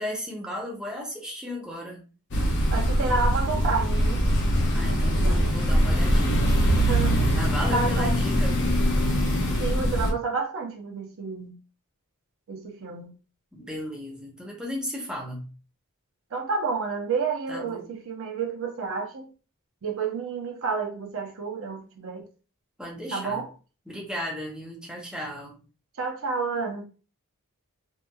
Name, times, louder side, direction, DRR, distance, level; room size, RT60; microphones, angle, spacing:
voice 1, 0.0-2.1 4.7-6.7 7.3-8.8 13.5-15.5 17.5-17.9 22.8-23.4 23.9-25.6, left 1 dB, 5° right, 0.6 m, -35 dB
sound 1, 2.3-10.1, equal, 50° left, 0.7 m, -22 dB
voice 2, 2.7-4.2 4.8-5.8 6.7-7.3 7.7-8.2 9.6-11.5 12.5-13.1 16.3-19.3 19.8-22.2 23.1-23.5 26.0-26.8, right 4 dB, 60° right, 0.5 m, -30 dB
2.9 x 2.2 x 2.2 m
head